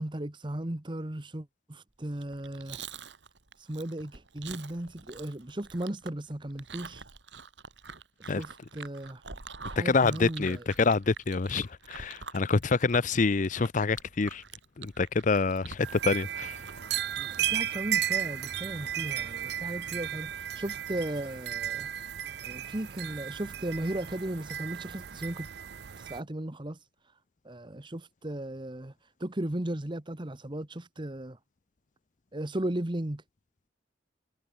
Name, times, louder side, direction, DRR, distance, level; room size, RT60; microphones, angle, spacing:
voice 1, 0.0-2.8 3.6-7.0 8.2-9.2 9.7-10.6 17.2-21.9 22.4-25.5 26.0-26.8 27.4-28.9 29.2-31.4 32.3-33.2, right 1 dB, 25° right, 1.2 m, -36 dB
Chewing mastication, 2.1-16.9, right 5 dB, 80° right, 2.9 m, -46 dB
voice 2, 9.8-14.4 14.8-16.6, left 4 dB, 45° left, 0.6 m, -26 dB
sound 1, 15.8-26.2, right 10 dB, 65° right, 0.6 m, -34 dB
head